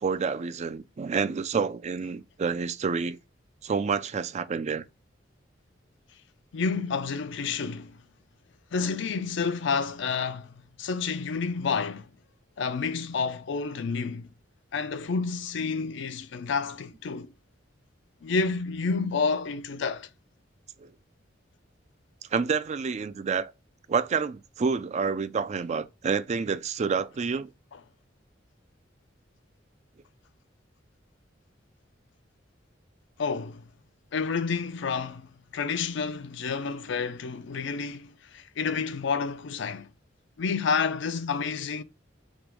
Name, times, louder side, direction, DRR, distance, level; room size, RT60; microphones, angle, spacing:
voice 1, 0.0-3.2 3.6-4.8 20.8-20.9 22.3-23.5 23.9-27.5, right 5 dB, 35° right, 0.4 m, -28 dB
voice 2, 6.5-8.0 8.7-12.1 12.6-14.3 14.7-17.3 18.2-20.1 33.2-33.6 34.1-39.9 40.4-41.8, left 5 dB, 65° left, 0.5 m, -29 dB
3.6 x 2.9 x 4.7 m
head